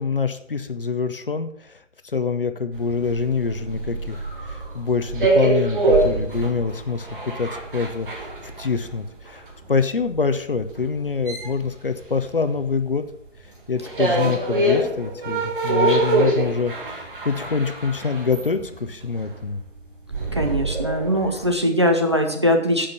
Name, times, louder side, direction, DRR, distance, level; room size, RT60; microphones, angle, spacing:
voice 1, 0.0-1.8 2.1-8.3 8.6-9.4 9.7-13.0 13.7-19.6, left 5 dB, 45° left, 10 dB, 0.8 m, -25 dB
sound 1, 2.7-12.8 13.0-21.5, right 2 dB, 45° right, 2.0 m, -25 dB
voice 2, 20.4-22.9, equal, 25° right, 2 dB, 0.6 m, -21 dB
11.0 x 5.1 x 6.8 m, 0.70 s
figure-of-eight pair, 150°, 37 cm